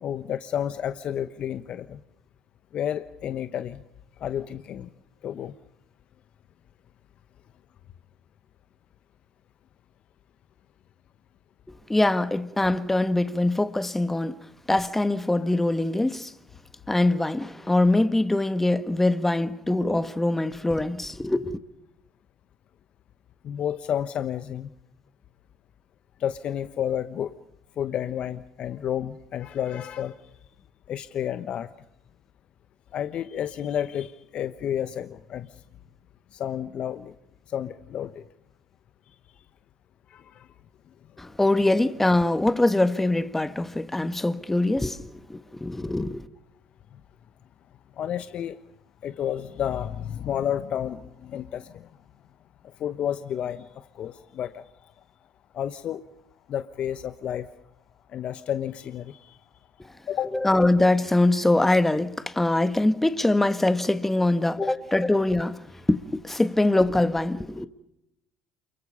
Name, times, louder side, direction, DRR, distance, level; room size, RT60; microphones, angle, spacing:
voice 1, 0.0-2.0 2.7-3.8 4.2-4.9 5.2-5.5 15.4-15.5 23.4-24.7 26.2-27.4 27.8-30.2 30.9-31.7 32.9-35.5 36.3-37.1 37.5-38.2 40.1-40.5 46.9-47.0 48.0-48.6 49.0-51.9 52.6-54.9 55.5-56.0 56.5-57.5 58.1-59.4 60.1-60.4 64.6-64.7, left 10 dB, 55° left, 1.0 m, -31 dB
voice 2, 11.9-14.4 14.7-16.3 16.9-21.6 41.2-46.3 60.3-65.6 65.9-67.7, left 2 dB, 10° left, 1.4 m, -23 dB
28.5 x 23.0 x 5.5 m
hypercardioid pair, 65°, 2 cm